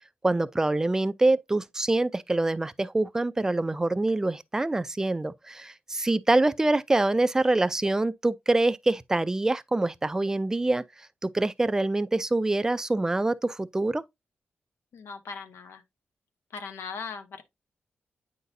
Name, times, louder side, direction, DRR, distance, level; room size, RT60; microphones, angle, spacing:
voice 1, 0.2-10.8 11.2-14.0, right 2 dB, 15° right, 0.3 m, -25 dB
voice 2, 14.9-15.8 16.5-17.4, left 5 dB, 85° left, 1.0 m, -39 dB
9.2 x 3.9 x 2.6 m
wide cardioid pair, 145°, 4 cm